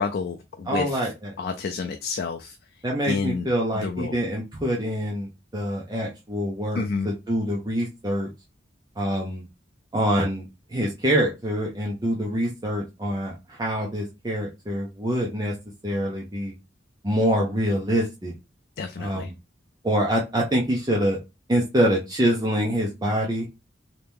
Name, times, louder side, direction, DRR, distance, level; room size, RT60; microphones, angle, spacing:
voice 1, 0.0-1.0 1.4-2.6 3.0-3.5 3.7-4.2 6.7-7.1 18.8-19.3, left 4 dB, 55° left, 6 dB, 0.4 m, -29 dB
voice 2, 0.7-1.3 2.8-8.3 9.0-9.5 9.9-10.4 10.7-15.5 15.8-16.5 17.0-18.3 19.0-19.3 19.8-21.2 21.5-23.5, equal, 20° right, -2 dB, 0.7 m, -25 dB
3.2 x 2.9 x 3.5 m, 0.25 s
head